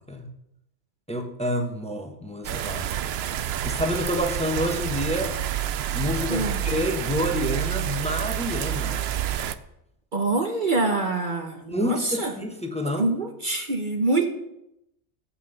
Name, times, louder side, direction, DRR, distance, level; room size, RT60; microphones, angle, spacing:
voice 1, 1.1-3.1 3.6-5.3 5.9-9.0 11.7-13.1, equal, 5° left, 4 dB, 1.2 m, -28 dB
sound 1, 2.4-9.5, right 10 dB, 65° right, 0.8 m, -28 dB
voice 2, 10.1-12.3 12.9-14.3, right 3 dB, 45° right, 5 dB, 1.2 m, -25 dB
14.5 x 5.8 x 6.6 m, 0.82 s
omnidirectional pair, 1.2 m